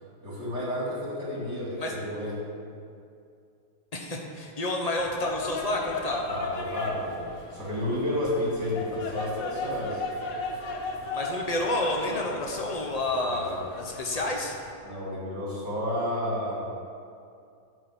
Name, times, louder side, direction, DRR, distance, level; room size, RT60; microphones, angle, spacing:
voice 1, 0.2-2.4 6.3-7.2 7.5-10.0 13.2-13.6 14.8-16.6, left 1 dB, 35° right, -5 dB, 2.6 m, -31 dB
voice 2, 3.9-6.3 11.1-14.5, left 1 dB, 35° left, 0 dB, 0.6 m, -29 dB
sound 1, 5.0-14.7, left 3 dB, 60° left, 1.1 m, -36 dB
10.0 x 4.9 x 7.2 m, 2.4 s
omnidirectional pair, 2.0 m